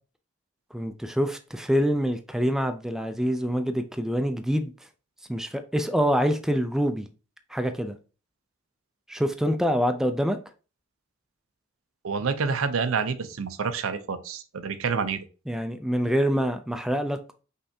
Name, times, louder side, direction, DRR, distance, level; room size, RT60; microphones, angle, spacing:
voice 1, 0.7-4.7 5.3-7.1 7.5-8.0 9.1-10.4 15.5-17.3, equal, ahead, 0.3 m, -26 dB
voice 2, 12.0-15.2, right 5 dB, 85° right, 0.6 m, -28 dB
5.5 x 3.3 x 2.7 m
head